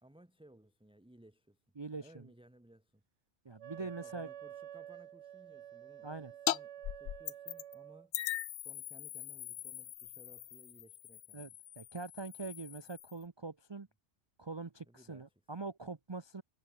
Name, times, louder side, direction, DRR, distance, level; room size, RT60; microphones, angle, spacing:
voice 1, 0.0-1.6 1.9-3.0 3.7-8.2 8.6-11.5 14.8-15.3, right 1 dB, 5° right, 1.5 m, -61 dB
voice 2, 1.8-2.2 3.4-4.3 6.0-6.3 11.3-11.5 11.8-13.9 14.4-16.4, right 3 dB, 25° right, 0.7 m, -43 dB
Wind instrument woodwind instrument, 3.6-8.1, right 10 dB, 65° right, 1.0 m, -50 dB
sound 1, 6.5-6.6 6.8-7.7 8.1-13.2, left 12 dB, 70° left, 0.9 m, -40 dB
omnidirectional pair, 1.3 m